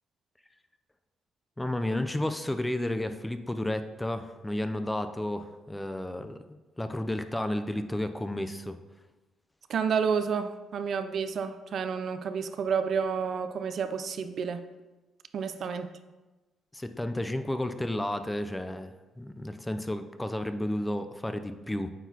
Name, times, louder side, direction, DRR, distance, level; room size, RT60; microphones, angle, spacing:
voice 1, 1.6-6.4 6.8-8.8 16.7-21.9, left 1 dB, 10° left, 9 dB, 0.4 m, -32 dB
voice 2, 9.7-14.6 15.3-15.9, right 6 dB, 60° right, 10 dB, 0.4 m, -30 dB
9.0 x 4.0 x 2.8 m, 1.2 s
cardioid pair, 90°, 0 cm